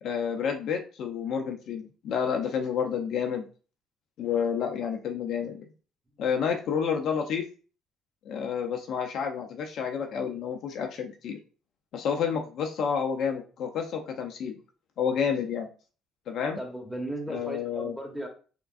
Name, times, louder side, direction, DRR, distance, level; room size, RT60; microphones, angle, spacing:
voice 1, 0.0-3.5 4.2-5.7 6.2-7.4 8.2-11.4 11.9-14.6 15.0-15.7 16.3-16.6 17.3-18.0, left 7 dB, 65° left, 3 dB, 0.5 m, -30 dB
voice 2, 16.6-18.3, right 1 dB, ahead, 2 dB, 1.3 m, -36 dB
3.7 x 3.5 x 2.4 m, 0.37 s
hypercardioid pair, 55°, 0 cm